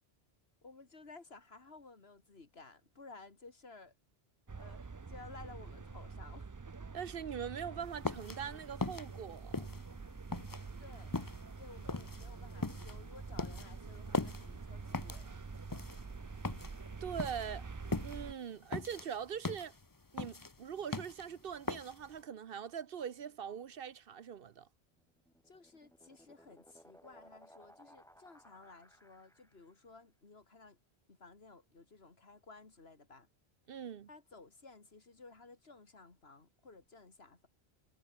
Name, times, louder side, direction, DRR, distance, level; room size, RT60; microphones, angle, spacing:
voice 1, 0.6-3.9 4.6-6.5 10.8-11.2 11.6-15.3 25.4-30.8 31.1-33.3 34.1-37.5, left 3 dB, 70° left, 2.8 m, -56 dB
sound 1, 4.5-18.3, right 4 dB, 30° right, 0.4 m, -47 dB
voice 2, 6.9-9.7 17.0-17.7 18.0-19.7 20.1-24.7 33.7-34.1, right 8 dB, 65° right, 0.9 m, -42 dB
sound 2, 7.8-22.2, left 3 dB, 20° left, 0.8 m, -41 dB
sound 3, 25.0-29.8, equal, 5° left, 3.9 m, -61 dB
omnidirectional pair, 1.1 m